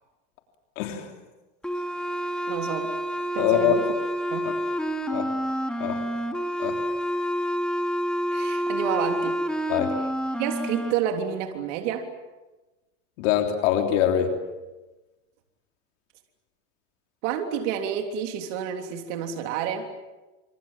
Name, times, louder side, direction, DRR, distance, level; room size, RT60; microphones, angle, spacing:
voice 1, 0.8-1.1 3.4-3.8 5.1-5.3 5.8-6.0 6.6-6.8 9.7-9.9 13.2-14.3, left 10 dB, 75° left, 3 dB, 3.5 m, -23 dB
sound 1, 1.6-10.9, equal, ahead, 2.8 m, -28 dB
voice 2, 2.5-2.9 3.3-3.9 4.3-4.5 8.3-9.4 10.4-12.1 17.2-19.9, right 8 dB, 75° right, 4 dB, 3.5 m, -29 dB
27.5 x 26.0 x 7.5 m, 1.1 s
supercardioid pair, 130°, 37 cm